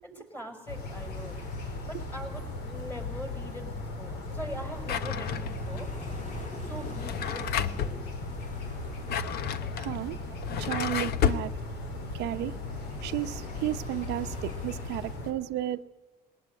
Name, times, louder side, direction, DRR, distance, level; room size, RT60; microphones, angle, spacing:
voice 1, 0.0-1.4 1.9-5.9 6.6-8.0, equal, 10° left, 6.1 m, -42 dB
sound 1, 0.7-15.3, left 2 dB, 90° left, 4.1 m, -37 dB
sound 2, 0.8-15.2, left 2 dB, 45° left, 5.0 m, -48 dB
Drawer open or close, 4.8-5.8 6.9-8.0 8.8-11.5, left 8 dB, 70° left, 1.1 m, -31 dB
voice 2, 9.8-11.5 12.1-12.6 13.0-15.8, right 14 dB, 80° right, 0.7 m, -33 dB
21.0 x 19.0 x 9.4 m
cardioid pair, 110°, 17 cm